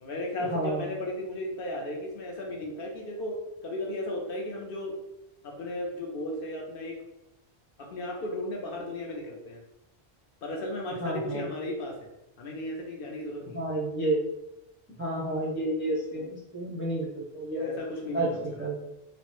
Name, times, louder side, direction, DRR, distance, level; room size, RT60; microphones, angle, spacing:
voice 1, 0.0-4.9 5.4-7.0 7.8-9.6 10.4-12.0 12.4-13.6 16.1-16.3 17.6-18.7, left 1 dB, 65° left, 0 dB, 0.8 m, -35 dB
voice 2, 0.5-0.9 11.0-11.5 13.5-14.2 15.0-17.7 18.1-18.8, right 1 dB, 20° right, -4 dB, 0.3 m, -30 dB
3.0 x 2.0 x 3.0 m, 0.87 s
omnidirectional pair, 1.1 m